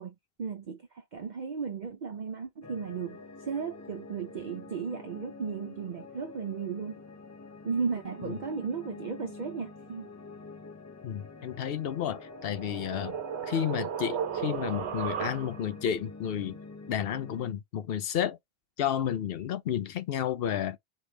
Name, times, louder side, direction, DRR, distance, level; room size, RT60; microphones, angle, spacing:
voice 1, 0.0-7.0 7.6-10.1, right 5 dB, 50° right, 0.7 m, -35 dB
sound 1, 2.6-17.5, left 3 dB, 25° left, 0.4 m, -47 dB
voice 2, 11.0-13.2 13.4-16.6 16.9-18.4 18.8-20.8, left 9 dB, 70° left, 0.8 m, -31 dB
sound 2, 12.0-15.8, right 8 dB, 85° right, 0.9 m, -35 dB
4.1 x 3.4 x 3.2 m
omnidirectional pair, 1.1 m